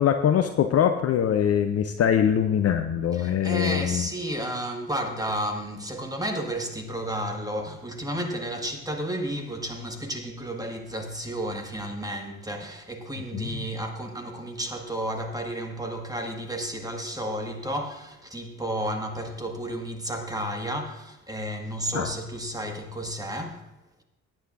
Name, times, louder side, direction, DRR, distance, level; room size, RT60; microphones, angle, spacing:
voice 1, 0.0-4.1 13.3-13.6 21.9-22.1, left 9 dB, 35° left, 0.7 m, -23 dB
voice 2, 3.1-23.6, right 1 dB, 10° right, 1.9 m, -32 dB
18.5 x 9.2 x 2.6 m
figure-of-eight pair, 50°, 41 cm